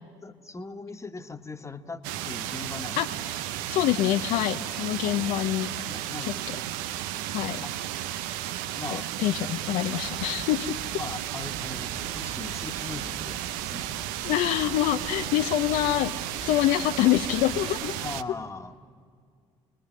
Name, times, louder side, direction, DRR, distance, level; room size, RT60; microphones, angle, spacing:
voice 1, 0.2-3.1 5.0-5.4 5.9-6.5 7.6-7.9 8.8-9.1 11.0-13.9 18.0-18.8, left 3 dB, 20° left, 8 dB, 1.5 m, -40 dB
sound 1, 2.0-18.2, right 13 dB, 75° right, 0.6 m, -33 dB
voice 2, 3.7-5.7 6.2-6.3 7.3-7.6 8.9-10.8 14.2-16.1 16.4-18.0, left 14 dB, 70° left, 8 dB, 0.6 m, -25 dB
sound 2, 10.0-18.2, right 2 dB, 40° right, 3.0 m, -47 dB
29.5 x 20.5 x 6.5 m, 2.1 s
hypercardioid pair, 50°, 14 cm